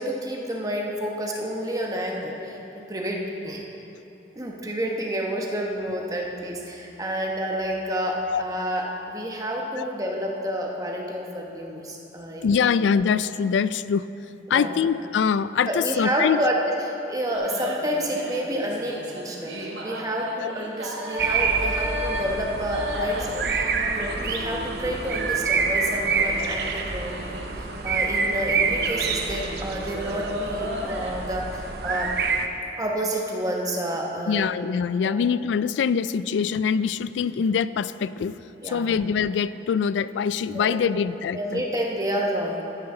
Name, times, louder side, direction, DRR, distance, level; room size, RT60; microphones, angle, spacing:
voice 1, 0.0-2.6 2.9-3.6 4.3-12.7 14.5-14.7 15.7-23.7 24.0-32.1 32.8-34.5 35.0-35.2 38.6-38.9 40.5-41.0 41.3-42.6, equal, 20° right, -1 dB, 1.1 m, -29 dB
voice 2, 12.4-14.1 14.5-16.4 20.4-20.5 21.6-21.7 23.0-23.1 34.3-38.4 38.6-41.6, left 6 dB, 90° left, 16 dB, 0.3 m, -24 dB
sound 1, 17.3-31.3, equal, 85° right, 1.4 m, -35 dB
sound 2, 21.2-32.5, right 5 dB, 60° right, 0.7 m, -27 dB
12.5 x 10.5 x 3.8 m, 2.9 s
head